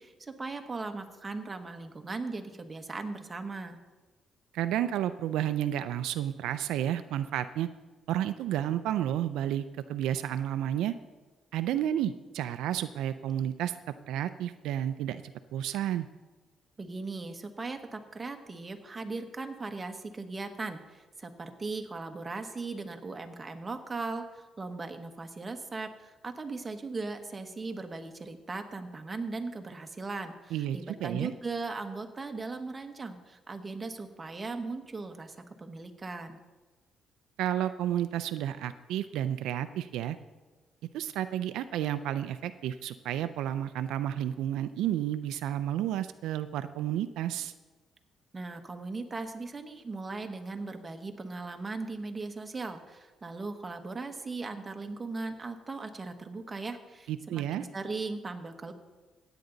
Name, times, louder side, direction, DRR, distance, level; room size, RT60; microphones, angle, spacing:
voice 1, 0.0-3.8 16.8-36.4 48.3-58.7, right 3 dB, 25° right, 5 dB, 1.3 m, -38 dB
voice 2, 4.5-7.7 8.1-10.9 11.5-13.8 14.1-15.2 15.5-16.1 30.5-31.3 37.4-40.2 40.9-47.5 57.1-57.7, right 11 dB, 90° right, 11 dB, 0.4 m, -31 dB
16.0 x 9.2 x 3.9 m, 1.2 s
cardioid pair, 100°, 0 cm